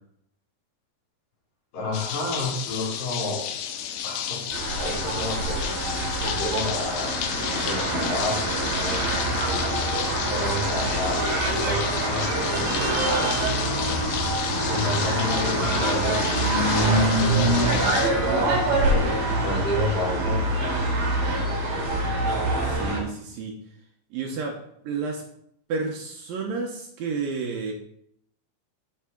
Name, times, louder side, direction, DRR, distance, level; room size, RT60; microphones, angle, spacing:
voice 1, 1.7-3.4 4.0-4.4 4.8-5.6 6.2-8.4 8.8-9.0 10.3-13.0 14.6-18.5 19.4-20.6, left 2 dB, 55° left, -4 dB, 3.9 m, -30 dB
sound 1, 1.9-18.1, left 9 dB, 85° left, 3.0 m, -32 dB
sound 2, 4.5-23.0, right 1 dB, 55° right, 3.7 m, -25 dB
voice 2, 22.6-23.6 24.1-25.2 25.7-27.7, right 4 dB, 75° right, 1 dB, 2.1 m, -31 dB
8.4 x 7.6 x 3.8 m, 0.71 s
omnidirectional pair, 5.2 m